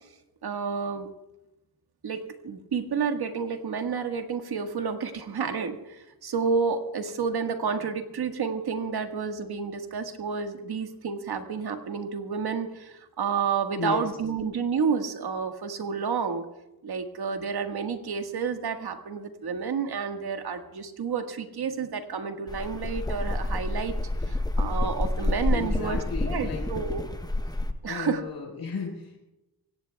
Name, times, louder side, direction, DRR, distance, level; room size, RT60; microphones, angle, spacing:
voice 1, 0.4-1.1 2.0-16.5 16.8-23.9 24.3-26.0 26.3-27.0 27.8-28.2, right 6 dB, 80° right, 5 dB, 1.6 m, -30 dB
sound 1, 22.5-27.7, left 2 dB, 10° left, 0.8 m, -28 dB
voice 2, 25.5-26.6 27.8-29.2, left 5 dB, 80° left, 0 dB, 4.4 m, -34 dB
24.5 x 17.5 x 2.3 m, 0.95 s
wide cardioid pair, 90°, 38 cm